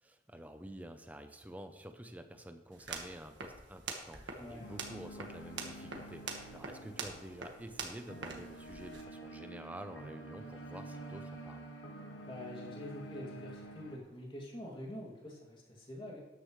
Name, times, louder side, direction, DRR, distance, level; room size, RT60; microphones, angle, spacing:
voice 1, 0.0-11.7, right 1 dB, 10° right, 7 dB, 0.7 m, -49 dB
sound 1, 2.7-9.0, right 4 dB, 80° right, 1.6 m, -45 dB
voice 2, 4.4-4.7 12.2-16.2, left 1 dB, 25° left, -3 dB, 2.5 m, -46 dB
sound 2, 4.6-14.0, right 1 dB, 90° left, 1.5 m, -49 dB
13.0 x 9.9 x 3.2 m, 1.1 s
head